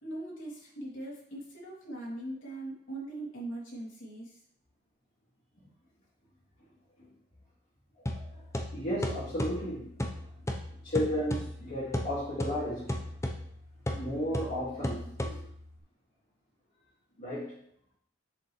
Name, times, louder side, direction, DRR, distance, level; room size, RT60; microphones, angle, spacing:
voice 1, 0.0-4.4 6.6-7.2 10.3-10.9, right 1 dB, 70° left, 2.9 m, -41 dB
sound 1, 8.1-15.8, left 1 dB, 15° left, 0.7 m, -36 dB
voice 2, 8.7-9.9 10.8-13.0 13.9-15.4 17.2-17.6, equal, 45° left, 2.2 m, -34 dB
8.0 x 6.9 x 3.2 m
head